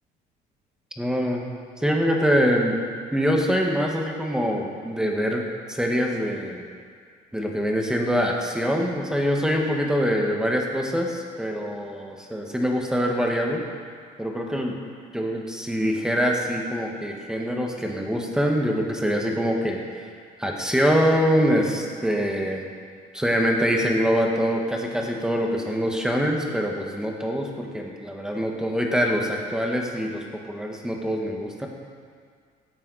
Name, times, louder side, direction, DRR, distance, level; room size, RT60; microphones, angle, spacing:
voice 1, 1.0-2.8 3.1-5.4 5.7-6.6 7.3-13.6 14.2-14.8 15.1-19.8 20.4-22.7 23.1-31.7, equal, 5° right, 0 dB, 1.7 m, -24 dB
16.5 x 9.7 x 4.2 m, 2.1 s
cardioid pair, 110°, 17 cm